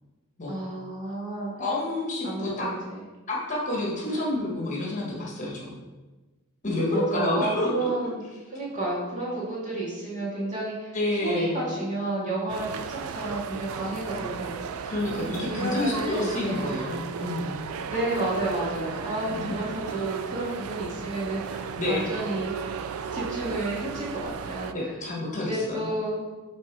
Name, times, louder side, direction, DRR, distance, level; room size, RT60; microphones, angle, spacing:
voice 1, 0.5-1.5 2.2-3.0 4.1-4.2 6.9-8.2 8.5-10.9 11.2-14.5 14.9-15.0 15.4-16.7 17.9-22.7 23.1-24.9 25.4-26.2, right 2 dB, 35° right, -7 dB, 2.1 m, -31 dB
voice 2, 1.6-2.7 3.3-5.7 6.6-7.9 10.9-11.7 14.8-17.6 19.3-19.5 21.8-22.1 24.7-25.9, left 2 dB, 35° left, -3 dB, 1.4 m, -29 dB
sound 1, 12.5-24.7, right 6 dB, 80° right, 0.4 m, -35 dB
7.3 x 3.7 x 4.6 m, 1.2 s
head